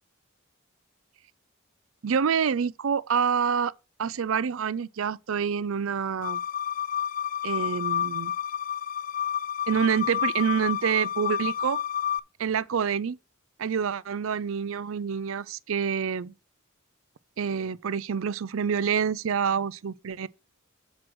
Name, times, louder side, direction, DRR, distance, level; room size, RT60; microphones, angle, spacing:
voice 1, 2.0-3.7 4.0-6.4 7.4-8.3 9.7-11.8 12.4-13.2 13.6-16.3 17.4-20.3, right 7 dB, 75° right, 0.5 m, -27 dB
sound 1, 6.2-12.2, left 9 dB, 40° left, 0.4 m, -30 dB
7.4 x 4.7 x 6.2 m
head